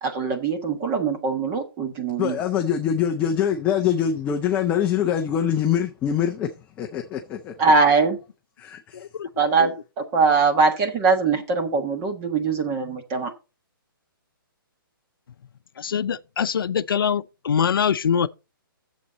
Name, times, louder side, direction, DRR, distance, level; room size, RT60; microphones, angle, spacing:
voice 1, 0.0-2.4 7.6-8.2 9.4-9.7 10.1-13.3, right 4 dB, 20° right, 1.4 m, -21 dB
voice 2, 2.2-6.5 6.8-7.5 8.6-9.1, left 9 dB, 10° left, 0.5 m, -24 dB
voice 3, 8.9-9.3 9.6-9.7 15.8-18.3, left 7 dB, 70° left, 0.6 m, -24 dB
10.5 x 7.3 x 4.0 m
hypercardioid pair, 165°, 12 cm